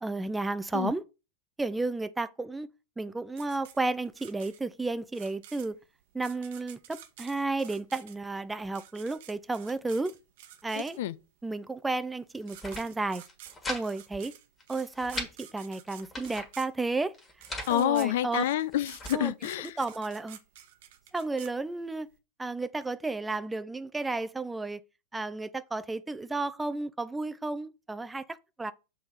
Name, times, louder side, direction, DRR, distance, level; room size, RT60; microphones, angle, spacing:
voice 1, 0.0-1.0 1.6-2.7 3.0-5.8 6.1-10.1 10.6-11.0 11.4-13.2 13.7-14.3 14.7-17.1 17.7-18.5 19.1-19.3 19.8-20.4 21.1-22.1 22.4-24.8 25.1-28.7, right 3 dB, 10° right, 0.4 m, -32 dB
sound 1, 3.4-11.3 12.1-12.2 12.4-22.1, right 11 dB, 55° right, 0.9 m, -50 dB
voice 2, 10.7-11.1 17.7-19.7, left 12 dB, 55° left, 0.4 m, -28 dB
sound 2, 12.4-12.9 13.2-13.8 14.1-14.2 14.6-15.3 15.9-16.5 17.1-17.7 18.4-19.2, left 2 dB, 15° left, 1.8 m, -39 dB
7.0 x 3.3 x 5.4 m
figure-of-eight pair, 90°, 0 cm